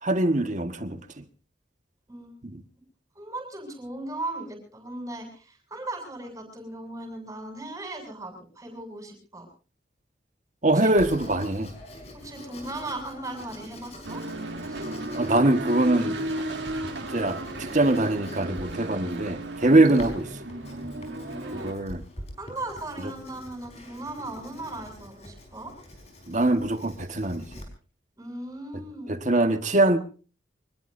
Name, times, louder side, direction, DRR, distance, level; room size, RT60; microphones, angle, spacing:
voice 1, 0.0-1.2 2.4-2.6 10.6-11.7 15.1-16.4 17.1-20.3 21.5-22.0 23.0-23.1 26.3-27.5 29.1-30.0, right 2 dB, 40° right, 1.5 m, -23 dB
voice 2, 3.2-9.5 10.7-10.9 12.1-14.2 14.6-14.9 19.6-19.8 21.0-21.7 22.4-25.7 28.2-29.1, right 2 dB, 20° right, 7.4 m, -38 dB
Writing, 11.0-27.6, left 1 dB, 35° left, 4.8 m, -45 dB
sound 1, 14.0-21.7, right 1 dB, 75° right, 3.0 m, -34 dB
25.5 x 20.5 x 2.7 m
head